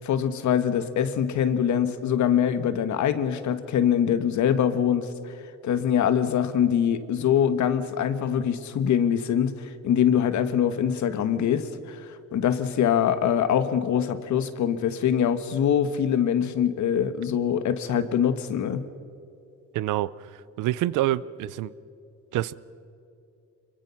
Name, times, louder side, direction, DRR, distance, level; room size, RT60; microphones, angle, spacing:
voice 1, 0.0-5.1 5.6-18.9, left 9 dB, 70° left, 11 dB, 1.4 m, -24 dB
voice 2, 19.7-20.1 20.6-21.7 22.3-22.5, right 15 dB, 90° right, 19 dB, 0.6 m, -26 dB
25.0 x 23.0 x 5.8 m, 2.6 s
cardioid pair, 90°, 30 cm